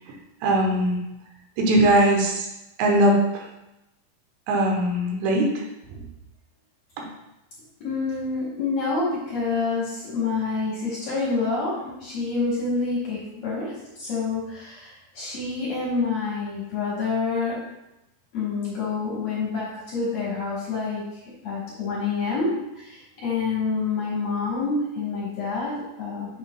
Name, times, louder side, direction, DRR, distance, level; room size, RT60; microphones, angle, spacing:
voice 1, 0.4-1.0 1.6-2.5 2.8-3.4 4.5-5.6 5.9-6.0 7.0-7.1, right 1 dB, 80° right, 0 dB, 3.1 m, -20 dB
voice 2, 7.8-17.6 18.3-21.0 21.4-26.4, left 4 dB, 60° left, -6 dB, 1.7 m, -27 dB
7.4 x 7.3 x 2.3 m, 0.91 s
omnidirectional pair, 5.1 m